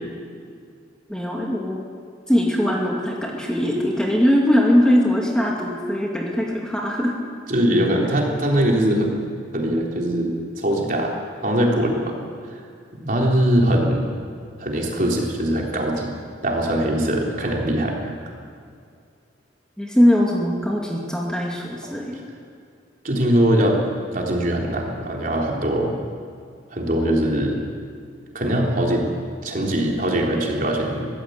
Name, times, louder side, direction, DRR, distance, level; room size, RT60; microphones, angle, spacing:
voice 1, 1.1-1.8 2.3-7.1 19.8-22.2, equal, 5° left, -2 dB, 2.3 m, -20 dB
voice 2, 7.5-9.3 9.5-11.1 11.4-12.1 12.5-12.6 13.0-14.1 14.6-16.2 16.4-18.1 23.0-23.8 24.1-25.9 26.7-27.6 28.3-29.1 29.4-31.1, right 1 dB, 45° right, -1 dB, 3.7 m, -21 dB
23.5 x 15.0 x 8.1 m, 2.3 s
head